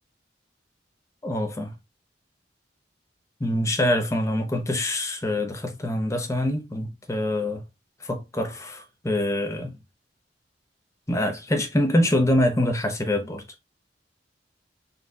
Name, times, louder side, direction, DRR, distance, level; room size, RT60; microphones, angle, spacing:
voice 1, 1.2-1.8 3.4-7.6 8.0-9.8 11.1-13.4, left 1 dB, 15° left, 0.7 m, -25 dB
4.0 x 2.4 x 3.4 m
head